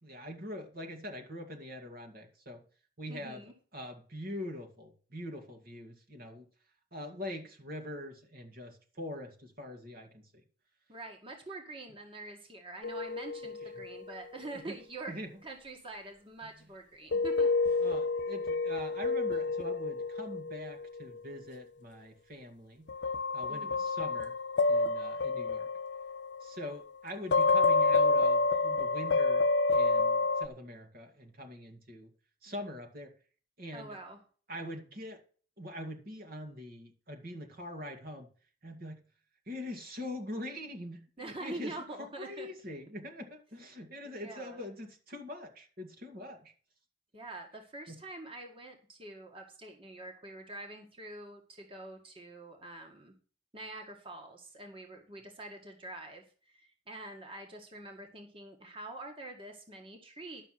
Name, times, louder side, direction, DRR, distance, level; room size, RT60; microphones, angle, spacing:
voice 1, 0.0-2.6 3.0-3.4 3.7-6.5 6.9-10.3 14.7-14.8 15.1-15.3 16.4-16.7 17.7-22.9 23.3-24.3 24.7-25.7 26.4-32.1 32.4-33.1 33.6-34.0 34.5-35.2 35.6-38.3 38.6-39.0 39.5-46.5 47.9-48.0, left 1 dB, 55° right, 4 dB, 2.2 m, -43 dB
voice 2, 3.1-3.5 10.9-17.8 23.5-23.8 33.7-34.2 41.2-42.5 44.0-44.6 47.1-53.1 53.5-60.4, right 2 dB, 30° right, 2 dB, 2.0 m, -45 dB
sound 1, 12.8-14.0 17.1-21.0 22.9-26.8 27.3-30.5, left 3 dB, 80° left, 0.6 m, -29 dB
12.0 x 6.5 x 5.8 m, 0.40 s
head